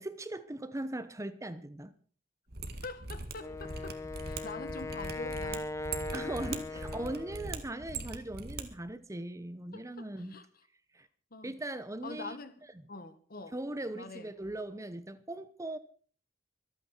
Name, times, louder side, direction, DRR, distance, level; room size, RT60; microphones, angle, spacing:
voice 1, 0.0-1.9 6.1-10.3 10.9-11.1 11.4-12.4 13.5-15.8, right 1 dB, 15° right, 0.9 m, -39 dB
Mechanisms, 2.5-8.6 8.9-9.0, right 3 dB, 60° right, 2.0 m, -41 dB
voice 2, 2.8-5.7 9.7-10.4 11.3-11.5 12.0-12.6 12.9-13.5 13.9-14.3, left 3 dB, 55° left, 1.7 m, -45 dB
Wind instrument woodwind instrument, 3.4-7.6, left 2 dB, 15° left, 0.8 m, -39 dB
25.0 x 9.2 x 4.5 m
head